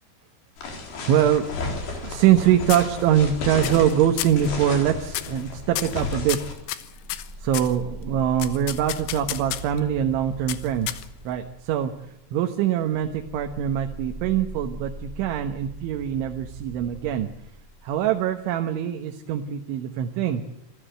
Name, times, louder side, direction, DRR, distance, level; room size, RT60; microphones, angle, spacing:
sound 1, 0.6-6.5, left 3 dB, 55° left, 5.9 m, -33 dB
voice 1, 1.1-1.5 2.0-6.4 7.4-11.9 12.3-17.3 17.8-20.4, right 10 dB, 85° right, 4 dB, 3.7 m, -23 dB
sound 2, 1.5-2.4 2.7-3.3 3.6-3.9 4.2-4.5 5.1-5.4 5.8-7.8 8.4-9.8 10.5-11.3, left 14 dB, 85° left, 3.6 m, -32 dB
sound 3, 6.8-18.3, right 1 dB, 60° right, 0.9 m, -42 dB
27.0 x 15.0 x 7.9 m, 0.85 s
omnidirectional pair, 5.3 m